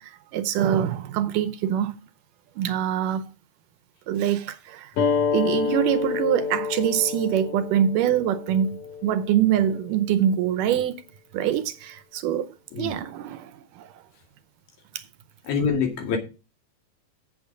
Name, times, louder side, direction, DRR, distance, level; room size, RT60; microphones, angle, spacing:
voice 1, 0.0-1.9 2.6-3.3 4.1-4.9 5.3-11.0 11.3-14.0, right 10 dB, 75° right, 2.2 m, -24 dB
sound 1, 5.0-10.1, left 5 dB, 65° left, 4.0 m, -28 dB
voice 2, 15.5-16.2, left 6 dB, 85° left, 4.2 m, -25 dB
8.5 x 8.1 x 5.0 m
omnidirectional pair, 4.1 m